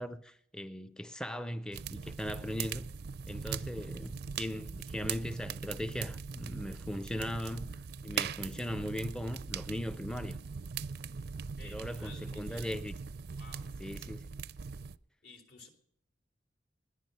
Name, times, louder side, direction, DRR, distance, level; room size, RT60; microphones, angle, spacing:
voice 1, 0.0-2.9 3.3-10.4 11.6-12.9 13.8-14.3, equal, 5° left, 0.4 m, -39 dB
sound 1, 1.7-15.0, right 6 dB, 60° right, 0.4 m, -41 dB
voice 2, 11.6-12.7 13.3-13.8 15.2-15.7, left 2 dB, 75° left, 3.6 m, -54 dB
20.0 x 10.5 x 5.5 m
head